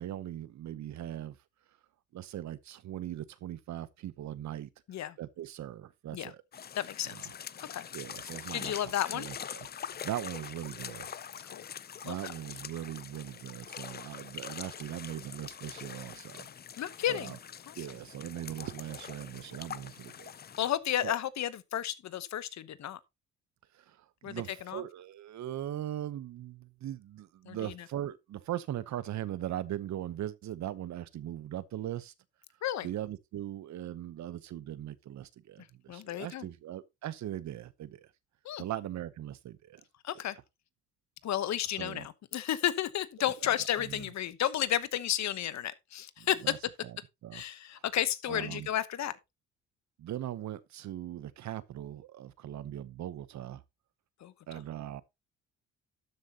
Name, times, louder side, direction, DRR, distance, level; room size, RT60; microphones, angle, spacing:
voice 1, 0.0-1.4 2.1-4.7 5.2-6.4 7.1-7.3 7.9-11.1 12.0-16.5 17.1-17.4 17.8-20.3 21.0-21.2 23.7-32.1 32.8-38.1 38.6-39.8 41.7-42.1 43.2-43.5 43.8-44.1 46.2-46.6 46.8-47.0 47.2-47.4 48.3-48.7 50.0-53.6 54.5-55.0, right 12 dB, 65° right, 0.9 m, -40 dB
sound 1, 6.5-20.7, left 8 dB, 35° left, 0.5 m, -44 dB
voice 2, 6.8-7.1 7.7-7.9 8.5-9.3 11.5-11.6 12.0-12.1 16.8-17.3 17.7-17.8 20.6-23.0 24.2-24.4 24.7-24.8 27.5-27.7 32.6-32.9 35.9-36.4 38.4-38.6 40.0-40.4 41.2-46.6 47.3-49.1 54.2-54.3, left 11 dB, 65° left, 1.0 m, -32 dB
12.5 x 7.8 x 2.9 m
cardioid pair, 90°, 30 cm